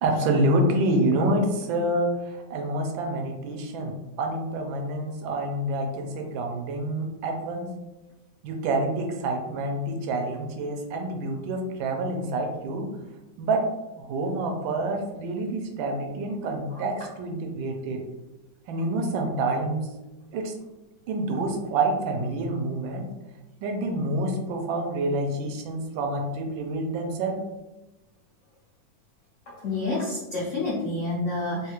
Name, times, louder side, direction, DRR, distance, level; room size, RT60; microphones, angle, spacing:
voice 1, 0.0-7.7 8.4-12.9 13.4-13.6 14.0-18.0 18.7-19.9 20.3-20.5 21.1-23.1 23.6-27.4, right 2 dB, 80° right, 3 dB, 1.3 m, -27 dB
voice 2, 29.5-31.7, left 2 dB, 80° left, -6 dB, 0.6 m, -29 dB
3.4 x 2.3 x 2.9 m, 1.0 s
omnidirectional pair, 2.1 m